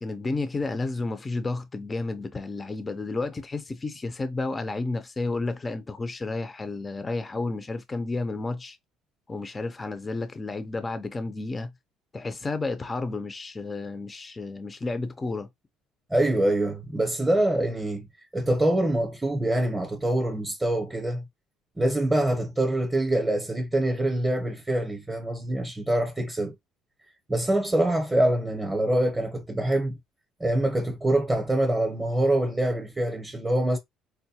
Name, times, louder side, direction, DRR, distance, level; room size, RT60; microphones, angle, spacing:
voice 1, 0.0-8.8 9.3-11.7 12.1-15.5, left 3 dB, 20° left, 0.5 m, -31 dB
voice 2, 16.1-18.1 18.3-21.2 21.8-26.5 27.3-30.0 30.4-33.8, right 1 dB, 10° right, 0.7 m, -25 dB
4.5 x 2.1 x 2.7 m
cardioid pair, 135°, 0 cm